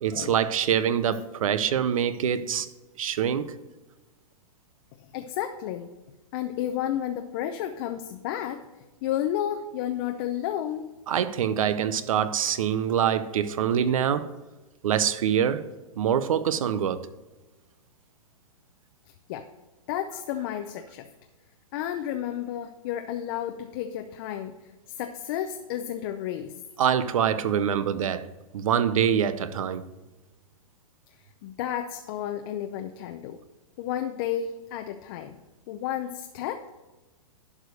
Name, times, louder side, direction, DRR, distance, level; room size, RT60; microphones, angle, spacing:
voice 1, 0.0-2.7 3.0-3.5 11.1-14.3 14.8-15.7 16.0-17.1 26.8-28.3 28.5-29.9, right 8 dB, 75° right, 0.7 m, -25 dB
voice 2, 5.1-5.9 6.3-8.6 9.0-10.9 19.3-19.5 19.9-21.1 21.7-24.5 25.0-26.5 31.4-33.4 33.8-35.4 35.7-36.7, left 11 dB, 40° left, 0.6 m, -31 dB
11.0 x 4.9 x 6.4 m
hypercardioid pair, 150°, 18 cm